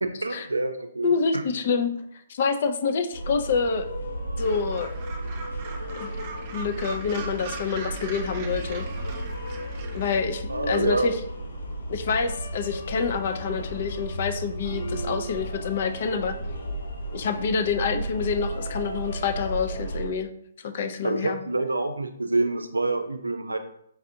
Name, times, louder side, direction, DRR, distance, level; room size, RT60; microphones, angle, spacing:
voice 1, 0.0-1.4 10.5-11.1 21.0-23.6, right 2 dB, 90° right, 7 dB, 0.4 m, -27 dB
voice 2, 1.0-1.9 2.3-3.9 4.4-4.9 5.9-6.1 6.5-8.9 9.9-11.2 11.9-16.4 17.1-20.3 20.6-21.4, left 5 dB, 50° left, 8 dB, 0.5 m, -27 dB
sound 1, 3.1-20.1, right 1 dB, 80° left, 0.8 m, -34 dB
Gull seagull, 4.4-10.2, right 4 dB, 35° right, 0.6 m, -40 dB
4.6 x 2.5 x 2.7 m, 0.69 s
figure-of-eight pair, 130°, 0 cm